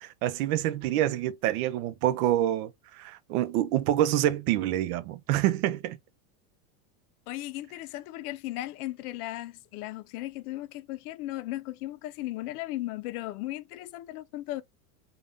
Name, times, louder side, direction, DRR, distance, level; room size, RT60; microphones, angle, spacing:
voice 1, 0.0-6.0, right 13 dB, 75° right, 0.6 m, -27 dB
voice 2, 7.3-14.6, left 16 dB, 85° left, 0.5 m, -36 dB
3.4 x 2.3 x 2.5 m
supercardioid pair, 140°, 43 cm